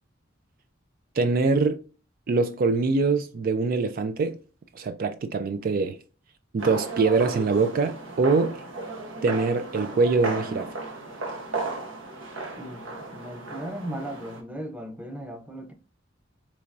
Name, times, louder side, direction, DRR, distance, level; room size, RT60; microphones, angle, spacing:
voice 1, 1.2-1.8 2.3-4.4 4.7-6.0 6.5-8.6 9.2-10.7, right 4 dB, 45° right, 0.3 m, -23 dB
sound 1, 6.6-14.4, right 2 dB, 75° right, 1.1 m, -35 dB
voice 2, 12.6-15.7, right 1 dB, 5° right, 0.6 m, -37 dB
4.7 x 3.0 x 2.6 m
head